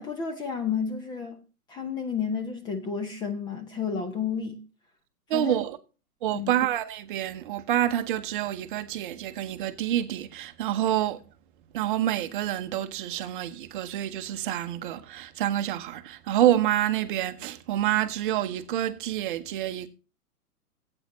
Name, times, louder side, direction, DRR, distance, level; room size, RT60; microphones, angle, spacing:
voice 1, 0.0-1.4 1.7-4.6 5.3-5.6 6.3-6.6, left 6 dB, 10° left, 0.7 m, -31 dB
voice 2, 5.3-5.8 6.2-11.2 11.7-19.9, right 12 dB, 35° right, 1.0 m, -27 dB
17.0 x 8.8 x 3.0 m
figure-of-eight pair, 120°, 46 cm